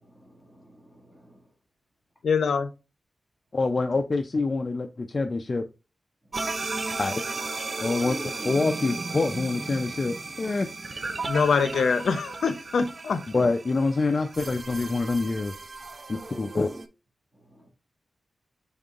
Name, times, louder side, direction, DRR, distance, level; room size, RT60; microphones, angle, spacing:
voice 1, 0.0-1.4 17.5-17.7, equal, 5° left, 1.7 m, -56 dB
voice 2, 2.2-2.7 11.2-13.2, left 5 dB, 90° left, 0.5 m, -24 dB
voice 3, 3.5-5.7 7.0-7.2 7.8-8.2 8.4-10.7 13.3-15.5 16.1-16.7, left 3 dB, 40° left, 0.3 m, -26 dB
sound 1, 6.3-16.9, right 3 dB, 40° right, 0.4 m, -35 dB
5.3 x 3.7 x 2.4 m
wide cardioid pair, 115°, 0 cm